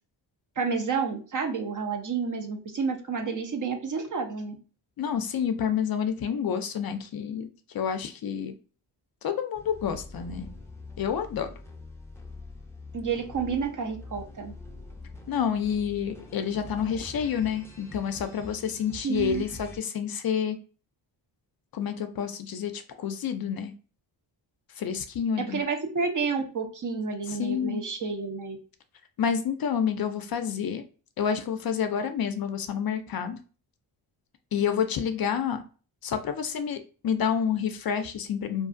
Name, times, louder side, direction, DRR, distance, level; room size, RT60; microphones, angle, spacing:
voice 1, 0.6-4.5 12.9-14.5 19.0-19.4 25.4-28.6, right 5 dB, 40° right, 4 dB, 0.7 m, -30 dB
voice 2, 5.0-7.5 7.7-8.5 9.2-10.5 11.0-11.5 15.3-20.6 21.7-23.7 24.8-25.6 27.3-27.8 29.2-30.8 31.2-33.4 34.5-35.6 36.0-38.7, left 7 dB, 50° left, 7 dB, 0.5 m, -29 dB
sound 1, 9.6-19.8, left 2 dB, 5° left, 0.6 m, -44 dB
2.5 x 2.3 x 2.5 m, 0.37 s
cardioid pair, 60°, 46 cm